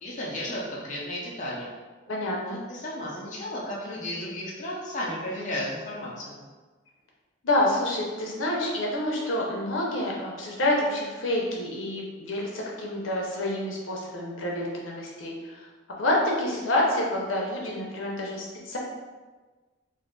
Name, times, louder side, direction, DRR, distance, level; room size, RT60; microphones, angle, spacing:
voice 1, 0.0-1.7 2.5-6.4, left 1 dB, 40° left, -5 dB, 0.6 m, -34 dB
voice 2, 2.1-2.6 7.4-15.6 16.0-18.8, left 1 dB, 80° left, -2 dB, 0.7 m, -28 dB
2.6 x 2.4 x 3.6 m, 1.3 s
head